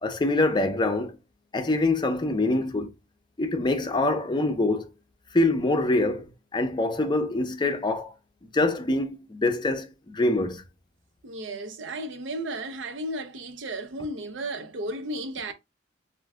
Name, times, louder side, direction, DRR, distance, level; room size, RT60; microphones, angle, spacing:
voice 1, 0.0-1.2 1.5-2.9 3.4-4.8 5.3-6.3 6.5-8.1 8.5-10.6, left 2 dB, 25° left, 0.4 m, -24 dB
voice 2, 11.2-15.5, right 1 dB, 85° right, 0.5 m, -34 dB
2.5 x 2.3 x 3.4 m
head